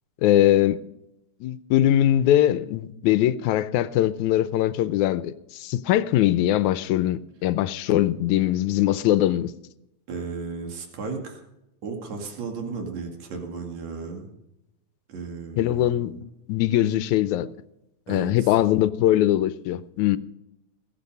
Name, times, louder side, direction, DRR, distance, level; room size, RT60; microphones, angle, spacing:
voice 1, 0.2-0.8 1.4-9.5 15.6-16.1 16.5-17.5 18.1-20.2, left 13 dB, 85° left, 2.1 m, -21 dB
voice 2, 10.1-11.4 11.8-14.3 15.1-16.2 18.1-18.3, right 4 dB, 65° right, 3.5 m, -34 dB
21.0 x 8.5 x 5.4 m
omnidirectional pair, 3.4 m